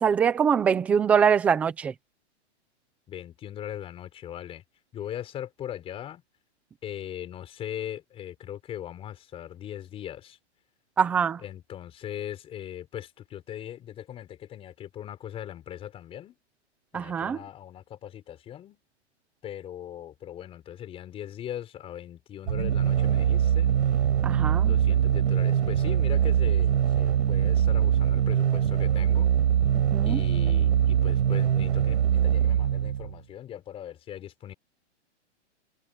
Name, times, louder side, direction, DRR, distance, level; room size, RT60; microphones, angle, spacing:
voice 1, 0.0-1.9 11.0-11.4 16.9-17.4 24.2-24.7 29.7-30.2, right 7 dB, 5° right, 0.5 m, -23 dB
voice 2, 3.1-4.6 4.9-6.2 6.8-10.4 11.4-16.4 16.9-18.8 19.4-23.7 24.6-29.3 30.0-34.5, left 11 dB, 15° left, 5.4 m, -39 dB
sound 1, 22.5-33.2, right 9 dB, 70° right, 4.8 m, -23 dB
hypercardioid pair, 165°, 35 cm